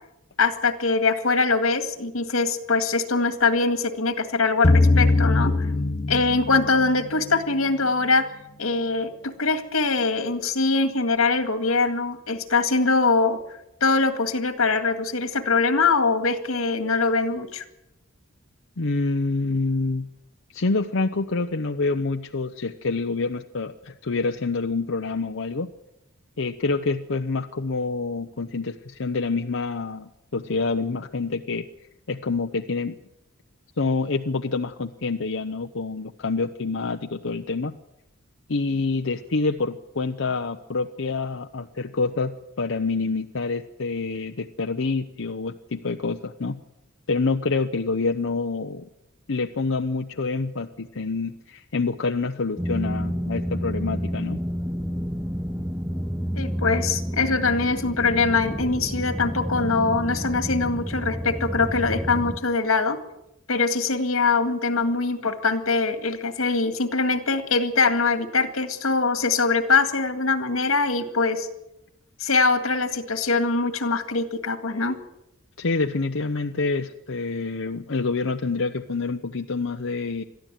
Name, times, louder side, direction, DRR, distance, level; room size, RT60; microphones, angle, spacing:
voice 1, 0.4-5.5 6.1-8.2 8.6-13.4 13.8-17.6 56.4-63.0 63.5-71.5 72.2-75.0, left 4 dB, 90° left, 9 dB, 2.0 m, -23 dB
sound 1, 4.6-7.0, left 2 dB, 35° left, 0.9 m, -20 dB
voice 2, 18.8-20.1 20.5-25.7 26.4-31.7 32.1-33.0 33.8-37.7 38.5-46.6 47.1-48.9 49.3-54.4 75.6-80.2, left 3 dB, 65° left, 5 dB, 0.8 m, -27 dB
sound 2, 52.6-62.4, equal, 5° right, 1.1 m, -29 dB
22.5 x 14.0 x 9.2 m, 0.89 s
head